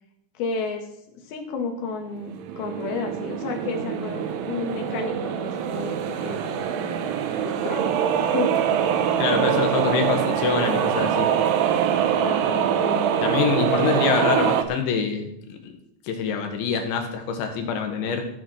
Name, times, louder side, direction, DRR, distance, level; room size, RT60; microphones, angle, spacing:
voice 1, 0.3-0.9 1.1-7.0 7.3-8.5 9.3-9.4 12.2-13.2, left 4 dB, 60° left, 3 dB, 3.3 m, -32 dB
sound 1, 2.2-14.6, right 9 dB, 75° right, 2.8 m, -24 dB
voice 2, 9.2-11.3 13.2-15.3 16.1-18.2, left 6 dB, 80° left, 5 dB, 3.9 m, -25 dB
14.5 x 6.6 x 6.5 m, 0.76 s
omnidirectional pair, 5.2 m